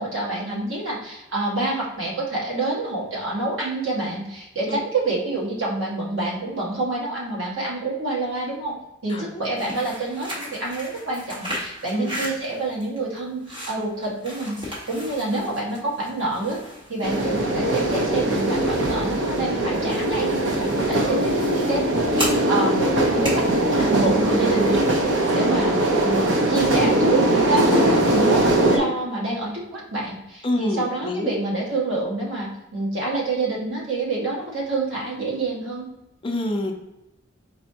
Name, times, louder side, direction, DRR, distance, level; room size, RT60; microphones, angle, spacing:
voice 1, 0.0-8.7 9.0-16.6 16.9-21.3 21.7-35.9, right 2 dB, 80° right, -5 dB, 1.6 m, -27 dB
voice 2, 9.1-9.7 11.9-12.1 30.4-31.3 36.2-36.7, left 1 dB, 25° left, 3 dB, 0.5 m, -27 dB
sound 1, 9.4-25.0, equal, 25° right, 1.3 m, -37 dB
sound 2, 17.0-28.8, right 1 dB, 65° right, 0.7 m, -21 dB
4.3 x 4.1 x 2.8 m, 0.93 s
head